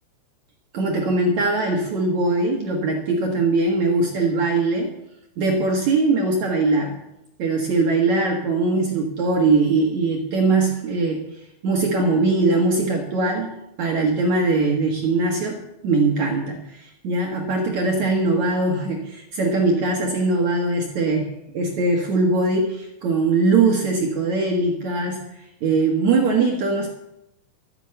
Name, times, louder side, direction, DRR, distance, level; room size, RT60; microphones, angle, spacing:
voice 1, 0.7-4.9 5.4-7.0 7.4-11.2 11.6-13.5 13.8-25.2 25.6-26.9, right 3 dB, 60° right, 0 dB, 1.9 m, -21 dB
14.0 x 9.1 x 8.0 m, 0.86 s
omnidirectional pair, 5.5 m